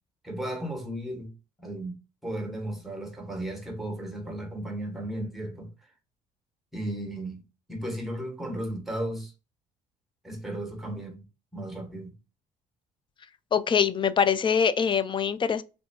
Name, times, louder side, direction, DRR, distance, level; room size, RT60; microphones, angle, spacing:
voice 1, 0.2-1.3 1.6-5.7 6.7-7.4 7.7-9.3 10.2-11.2 11.5-12.2, right 1 dB, ahead, 1.4 m, -35 dB
voice 2, 13.5-15.6, left 7 dB, 30° left, 0.4 m, -23 dB
3.3 x 2.7 x 2.8 m
supercardioid pair, 75°, 17 cm